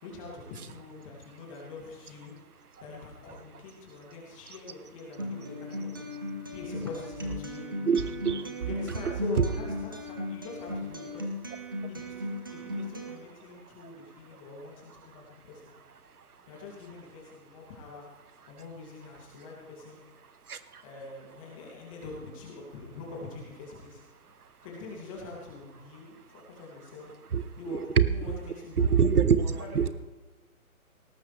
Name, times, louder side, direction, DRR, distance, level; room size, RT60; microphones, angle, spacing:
voice 1, 0.0-2.3 2.8-6.0 6.5-7.7 8.7-11.3 11.9-15.7 16.5-18.1 18.5-20.0 20.8-24.0 24.6-27.1 27.6-27.8 28.1-29.1 29.6-29.9, left 3 dB, 20° left, -3 dB, 2.7 m, -44 dB
Acoustic guitar, 5.2-13.2, left 1 dB, 15° right, 0.6 m, -36 dB
voice 2, 7.9-8.5 8.9-9.0 9.4-9.5 20.5-20.6 27.3-28.1 28.8-29.9, right 6 dB, 85° right, 13 dB, 1.2 m, -24 dB
18.0 x 13.5 x 3.4 m, 1.2 s
hypercardioid pair, 160°, 44 cm